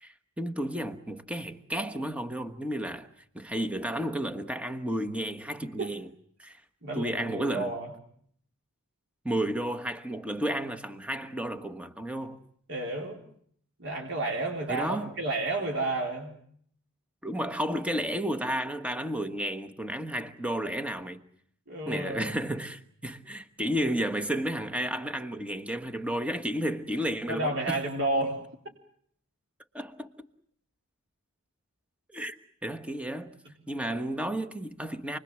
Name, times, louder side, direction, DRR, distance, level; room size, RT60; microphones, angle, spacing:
voice 1, 0.0-3.1 3.3-6.1 6.4-6.6 6.9-7.8 9.2-12.4 14.7-15.1 17.2-21.2 21.9-27.8 29.7-30.3 32.1-32.4 32.6-33.3 33.7-35.2, right 1 dB, 5° right, 1.3 m, -32 dB
voice 2, 6.8-7.9 12.7-13.2 13.8-16.3 21.7-22.3 27.3-28.4, right 2 dB, 55° right, 4.2 m, -31 dB
28.5 x 21.5 x 7.7 m
head